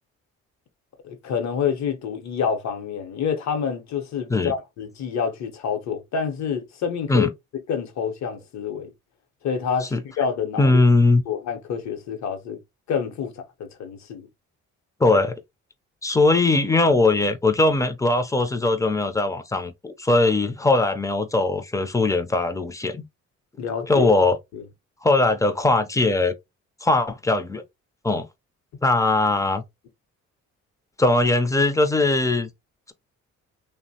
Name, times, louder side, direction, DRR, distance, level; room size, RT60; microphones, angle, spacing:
voice 1, 1.0-7.3 7.7-8.9 9.4-10.8 11.3-12.6 12.9-14.3 15.1-15.2 23.6-24.7, left 7 dB, 65° left, 0.8 m, -28 dB
voice 2, 10.6-11.2 15.0-15.4 16.0-23.0 23.9-24.4 25.0-26.3 26.8-27.6 28.0-28.3 28.8-29.6 31.0-32.5, left 2 dB, 10° left, 0.4 m, -20 dB
3.0 x 2.1 x 2.7 m
cardioid pair, 90°, 30 cm